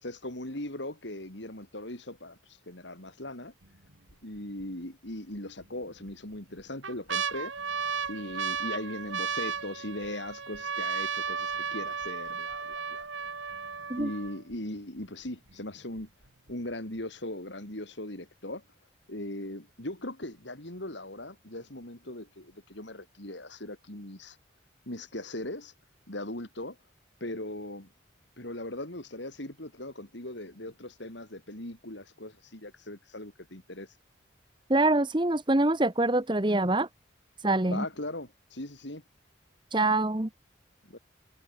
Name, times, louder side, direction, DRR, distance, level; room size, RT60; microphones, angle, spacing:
voice 1, 0.0-3.5 4.2-7.5 8.1-13.3 14.0-16.1 16.5-18.6 19.1-24.4 24.9-25.7 26.1-26.8 27.2-27.9 28.4-33.9 37.6-39.0 40.8-41.0, left 1 dB, 70° left, 4.6 m, -39 dB
sound 1, 3.6-4.1 4.6-4.7 5.6-6.1 6.6-14.5 15.3-15.4 15.5-16.0 16.5-16.6, right 6 dB, 80° right, 2.1 m, -34 dB
voice 2, 34.7-36.9 37.4-37.8 39.7-40.3, right 2 dB, 25° right, 1.1 m, -25 dB
head